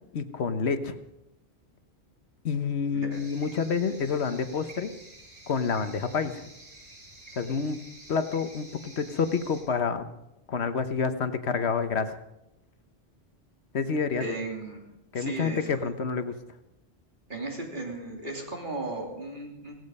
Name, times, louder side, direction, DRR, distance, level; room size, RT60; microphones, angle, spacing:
voice 1, 0.1-0.9 2.4-4.9 5.5-6.4 7.4-7.8 8.1-10.1 10.5-12.2 13.7-14.3 15.1-16.3, left 5 dB, 75° left, 10 dB, 1.3 m, -28 dB
sound 1, 3.1-9.6, right 2 dB, 75° right, 7.6 m, -50 dB
voice 2, 14.1-14.8 15.1-15.9 17.3-19.8, right 2 dB, 50° right, 0 dB, 3.4 m, -35 dB
17.0 x 16.0 x 5.4 m, 0.90 s
omnidirectional pair, 1.1 m